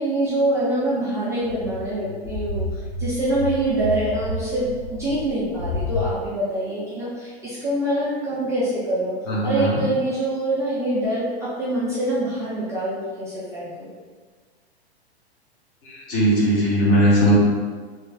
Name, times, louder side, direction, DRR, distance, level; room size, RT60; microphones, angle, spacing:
voice 1, 0.0-9.1 9.4-13.9, right 1 dB, 10° right, -10 dB, 0.6 m, -25 dB
sound 1, 1.4-6.1, left 2 dB, 65° left, 1.2 m, -30 dB
voice 2, 9.3-9.8 15.8-17.3, equal, 40° left, -6 dB, 1.5 m, -19 dB
3.1 x 3.1 x 3.5 m, 1.6 s
figure-of-eight pair, 100°, 32 cm